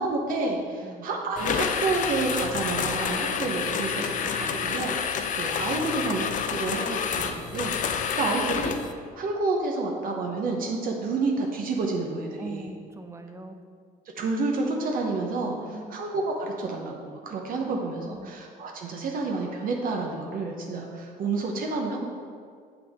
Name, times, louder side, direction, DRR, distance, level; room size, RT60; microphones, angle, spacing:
voice 1, 0.0-8.8 9.2-12.7 14.2-15.5 15.9-22.1, right 3 dB, 55° right, 0 dB, 0.9 m, -29 dB
sound 1, 1.4-8.9, left 7 dB, 50° left, 0.5 m, -29 dB
voice 2, 12.4-13.6 15.4-16.0 17.6-18.3, right 3 dB, 15° right, 6 dB, 0.6 m, -41 dB
7.0 x 5.9 x 3.5 m, 2.1 s
cardioid pair, 110°, 17 cm